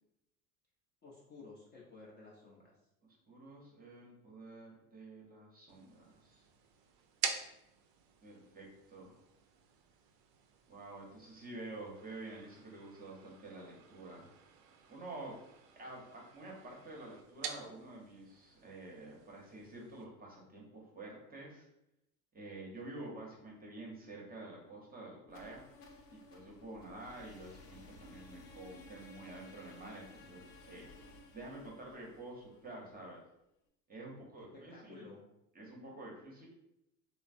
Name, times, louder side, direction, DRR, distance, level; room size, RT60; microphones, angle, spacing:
voice 1, 1.0-2.8 34.0-35.3, left 3 dB, 20° left, -4 dB, 0.5 m, -55 dB
voice 2, 3.3-6.4 8.2-9.2 10.7-14.3 14.9-15.4 15.8-21.7 22.3-25.6 26.1-30.9 31.3-33.2 33.9-35.1 35.5-36.5, right 2 dB, 20° right, -2 dB, 0.7 m, -49 dB
sound 1, 5.7-20.0, right 7 dB, 50° right, 0.4 m, -48 dB
sound 2, 25.2-33.2, left 2 dB, 80° left, 0.6 m, -56 dB
3.1 x 2.0 x 2.5 m, 0.84 s
hypercardioid pair, 80°, 48 cm